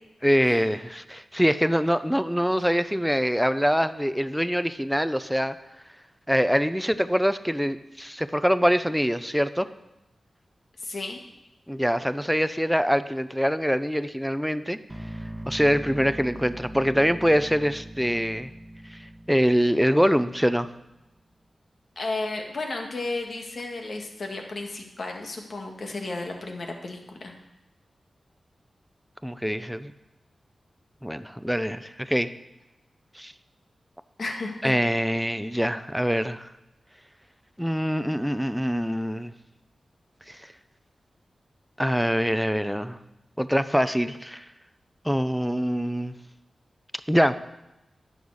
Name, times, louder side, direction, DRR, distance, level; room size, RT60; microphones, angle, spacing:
voice 1, 0.2-5.5 6.3-9.7 11.7-14.8 15.5-18.5 19.3-20.7 29.2-29.9 31.0-32.3 33.2-33.3 34.6-36.5 37.6-39.3 41.8-43.0 43.4-44.4 45.0-46.1 47.1-47.3, equal, ahead, 12 dB, 0.6 m, -24 dB
voice 2, 10.8-11.2 22.0-27.4 34.2-34.7, left 2 dB, 60° left, 2 dB, 1.8 m, -33 dB
sound 1, 14.9-20.9, right 1 dB, 20° right, 1.3 m, -41 dB
11.0 x 7.2 x 6.4 m, 0.94 s
wide cardioid pair, 75°, 0 cm